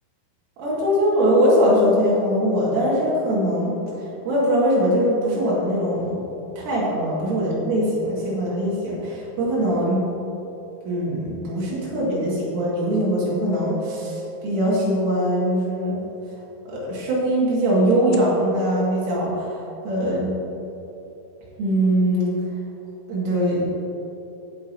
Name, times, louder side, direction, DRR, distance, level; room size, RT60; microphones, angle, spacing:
voice 1, 0.6-3.7 4.3-6.2 6.6-10.1 10.9-16.0 16.7-20.4 21.6-22.4 23.1-23.7, equal, 85° right, -6 dB, 4.7 m, -21 dB
sound 1, 13.0-13.1 13.5-15.3 17.9-18.2, left 3 dB, 85° left, 2.9 m, -36 dB
17.0 x 6.4 x 2.9 m, 3.0 s
omnidirectional pair, 5.6 m